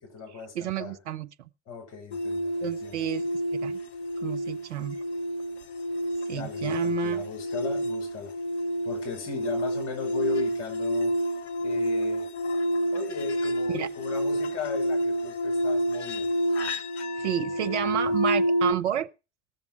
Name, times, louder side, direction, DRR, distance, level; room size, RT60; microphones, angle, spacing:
voice 1, 0.0-1.0 1.7-3.0 6.3-8.3 8.8-11.2 11.6-12.3 12.9-16.3, left 4 dB, 50° left, 6.0 m, -37 dB
voice 2, 0.5-1.5 2.6-3.8 4.2-5.0 6.3-7.2 13.7-13.9 17.2-19.1, right 11 dB, 75° right, 0.8 m, -30 dB
sound 1, 2.1-18.7, equal, 70° left, 1.0 m, -29 dB
18.5 x 7.2 x 4.8 m
figure-of-eight pair, 70°, 34 cm